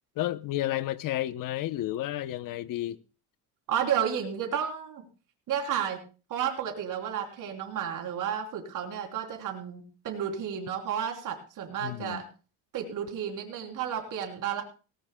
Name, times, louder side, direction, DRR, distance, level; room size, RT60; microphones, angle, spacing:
voice 1, 0.2-3.0 11.8-12.2, left 14 dB, 55° left, 0.8 m, -31 dB
voice 2, 3.7-5.1 5.5-6.0 6.3-12.3 12.7-14.6, right 8 dB, 55° right, 3.5 m, -32 dB
19.0 x 18.0 x 2.2 m
cardioid pair, 155°, 39 cm